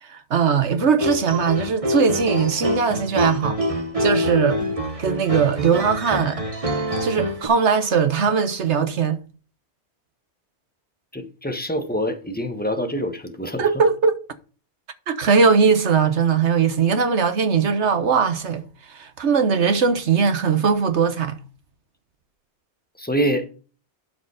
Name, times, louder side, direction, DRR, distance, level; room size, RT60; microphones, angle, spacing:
voice 1, 0.0-3.6 4.0-4.6 5.0-6.4 7.0-9.2 13.6-14.2 15.1-18.6 18.9-21.4, right 6 dB, 80° right, 1.4 m, -20 dB
sound 1, 0.8-7.5, equal, 30° right, 1.5 m, -25 dB
voice 2, 11.1-13.6 23.0-23.5, equal, 10° left, 1.3 m, -25 dB
12.0 x 5.1 x 4.9 m
omnidirectional pair, 1.2 m